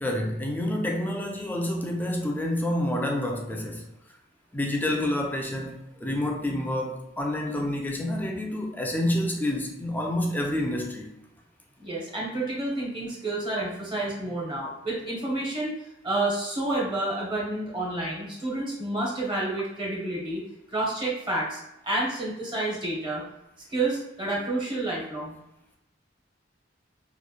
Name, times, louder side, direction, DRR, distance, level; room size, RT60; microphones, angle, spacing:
voice 1, 0.0-3.8 4.5-11.1, left 1 dB, 10° left, 1 dB, 0.3 m, -28 dB
voice 2, 11.8-15.7 16.0-20.4 20.7-23.2 23.7-25.4, right 2 dB, 25° right, -4 dB, 0.7 m, -29 dB
2.9 x 2.0 x 2.3 m, 0.87 s
head